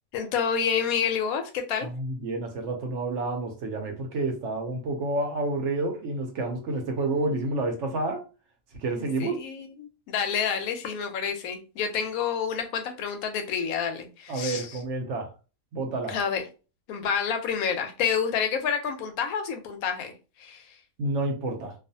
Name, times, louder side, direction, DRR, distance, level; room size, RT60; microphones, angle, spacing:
voice 1, 0.1-1.9 9.0-14.8 16.1-16.4 16.9-20.1 20.4-20.6, left 7 dB, 90° left, 6 dB, 1.0 m, -29 dB
voice 2, 1.8-8.2 8.8-9.4 14.3-15.3 15.7-16.2 21.0-21.7, right 2 dB, 65° right, 4 dB, 0.9 m, -29 dB
2.4 x 2.4 x 2.6 m, 0.33 s
omnidirectional pair, 1.5 m